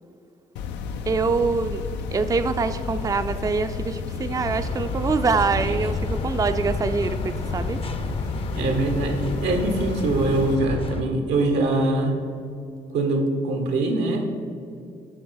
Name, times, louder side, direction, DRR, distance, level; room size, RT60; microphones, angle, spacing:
sound 1, 0.6-10.6, left 5 dB, 85° left, 0.4 m, -32 dB
voice 1, 1.1-1.9 2.1-7.8, right 4 dB, 20° right, 9 dB, 0.4 m, -24 dB
sound 2, 4.3-11.0, left 3 dB, 30° left, 0.6 m, -31 dB
voice 2, 8.5-12.2 12.9-14.4, right 2 dB, 80° right, 4 dB, 0.9 m, -23 dB
7.2 x 3.3 x 6.2 m, 2.5 s
supercardioid pair, 50°, 18 cm